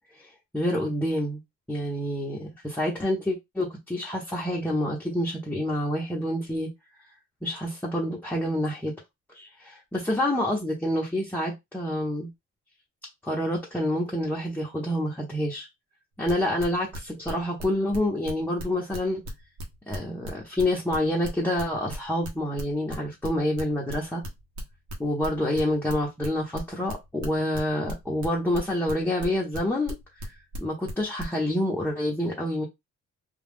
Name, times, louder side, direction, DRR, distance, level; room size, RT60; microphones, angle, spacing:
voice 1, 0.1-1.4 1.7-6.7 7.4-8.9 9.3-12.3 13.2-15.7 16.2-19.2 19.9-24.2 25.0-32.6, left 1 dB, 5° left, 0.8 m, -28 dB
sound 1, 16.3-18.0 18.3-22.3 22.6-26.3 26.5-31.2, equal, 70° right, 1.1 m, -36 dB
2.4 x 2.3 x 3.5 m
cardioid pair, 90°, 30 cm